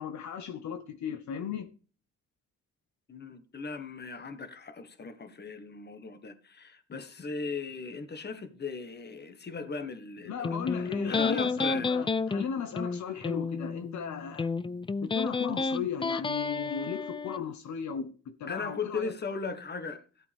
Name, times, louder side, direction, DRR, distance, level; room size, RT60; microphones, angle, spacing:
voice 1, 0.0-1.7 10.2-14.5 15.0-19.1, left 7 dB, 70° left, 1.2 m, -36 dB
voice 2, 3.1-11.9 18.5-20.0, left 4 dB, 35° left, 1.6 m, -38 dB
Electric guitar, 10.4-17.4, left 4 dB, 15° left, 0.5 m, -31 dB
14.0 x 8.2 x 3.5 m
cardioid pair, 90°, 30 cm